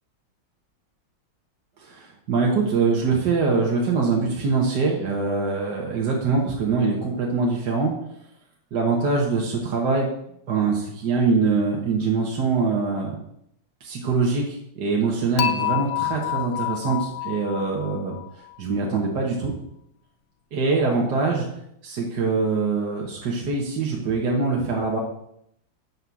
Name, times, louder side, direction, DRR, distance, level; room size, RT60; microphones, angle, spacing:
voice 1, 1.8-7.9 8.7-10.1 10.5-13.2 13.8-18.1 18.6-19.5 20.5-21.5 21.8-25.0, right 4 dB, 60° right, -2 dB, 1.8 m, -23 dB
Dishes pots and pans / Chink clink, 15.4-18.5, left 14 dB, 80° left, 0.7 m, -28 dB
6.3 x 5.7 x 6.9 m, 0.73 s
omnidirectional pair, 2.2 m